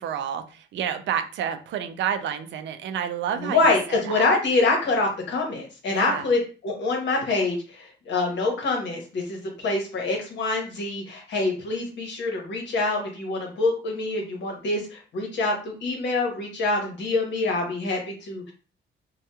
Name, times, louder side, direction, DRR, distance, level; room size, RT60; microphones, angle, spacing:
voice 1, 0.0-4.2 5.9-6.3, right 9 dB, 65° right, 8 dB, 0.4 m, -30 dB
voice 2, 3.4-18.5, left 3 dB, 65° left, 1 dB, 1.0 m, -25 dB
2.8 x 2.3 x 2.2 m, 0.35 s
cardioid pair, 90°, 20 cm